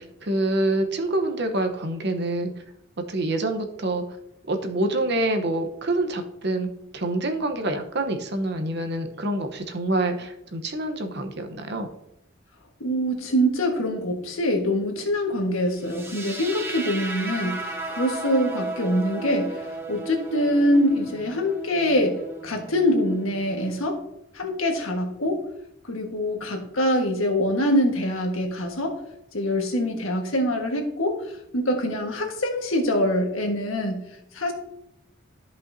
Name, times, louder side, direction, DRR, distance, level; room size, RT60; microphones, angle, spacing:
voice 1, 0.0-2.5 3.1-4.0 4.5-6.7 6.9-11.9, right 2 dB, 55° right, 6 dB, 0.9 m, -26 dB
voice 2, 12.8-24.0 24.3-25.4 25.8-29.0 29.3-31.2 31.5-34.0 34.3-34.5, equal, 85° left, 3 dB, 1.5 m, -24 dB
sound 1, 15.8-23.9, right 2 dB, 10° right, 0.9 m, -35 dB
13.5 x 5.4 x 2.7 m, 0.81 s
head